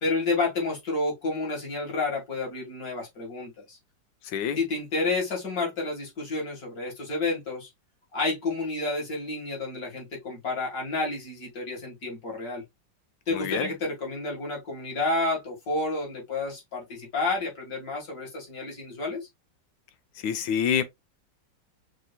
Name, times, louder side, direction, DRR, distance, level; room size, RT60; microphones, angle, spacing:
voice 1, 0.0-3.8 4.6-7.7 8.1-12.6 13.3-19.3, left 3 dB, 50° left, 2.3 m, -30 dB
voice 2, 13.3-13.7 20.2-20.8, left 8 dB, 90° left, 1.4 m, -26 dB
6.1 x 2.8 x 2.2 m
omnidirectional pair, 2.0 m